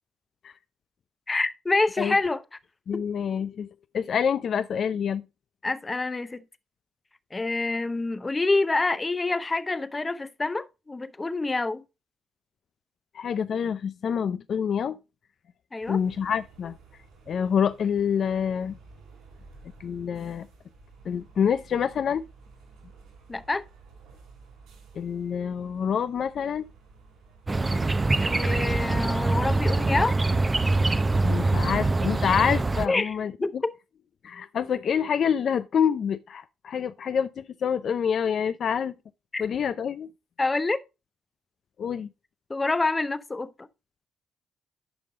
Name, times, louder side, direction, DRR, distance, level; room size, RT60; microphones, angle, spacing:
voice 1, 1.3-2.4 2.9-3.0 5.6-6.4 7.3-11.8 15.7-16.0 23.3-23.6 28.2-30.2 32.9-33.1 33.4-33.7 39.3-39.4 40.4-40.8 42.5-43.7, left 3 dB, 25° left, 0.7 m, -27 dB
voice 2, 2.9-3.7 3.9-5.2 13.1-15.0 15.9-16.8 17.3-18.8 19.8-20.5 21.1-22.2 25.0-26.7 31.2-33.3 34.2-38.9 39.4-40.1 41.8-42.1, left 7 dB, 60° left, 0.4 m, -27 dB
sound 1, 15.8-32.2, right 4 dB, 80° right, 6.2 m, -53 dB
sound 2, 27.5-32.9, right 2 dB, 25° right, 0.7 m, -24 dB
10.5 x 5.4 x 3.6 m
supercardioid pair, 65°, 0 cm